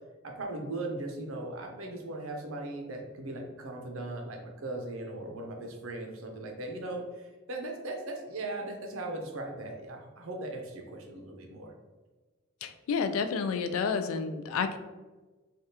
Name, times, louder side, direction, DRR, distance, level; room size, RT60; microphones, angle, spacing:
voice 1, 0.2-11.7, right 2 dB, 80° right, 2 dB, 0.6 m, -38 dB
voice 2, 12.6-14.8, left 5 dB, 90° left, 8 dB, 0.3 m, -30 dB
3.4 x 2.3 x 2.7 m, 1.3 s
head